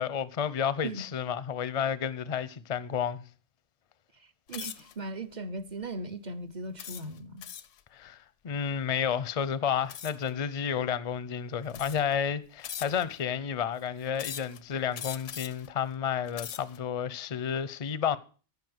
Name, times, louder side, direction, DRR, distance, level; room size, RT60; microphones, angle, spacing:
voice 1, 0.0-3.2 7.9-18.2, left 8 dB, 40° left, 0.6 m, -31 dB
voice 2, 4.2-7.5, right 2 dB, 40° right, 1.0 m, -38 dB
sound 1, 4.5-4.9 5.6-5.8 6.8-7.8 9.9-10.3 11.1-11.2 11.7-12.2 12.6-13.2 14.2-14.6 14.9-15.7 16.2-16.8, left 9 dB, 85° left, 1.1 m, -41 dB
14.0 x 5.6 x 7.9 m
omnidirectional pair, 1.2 m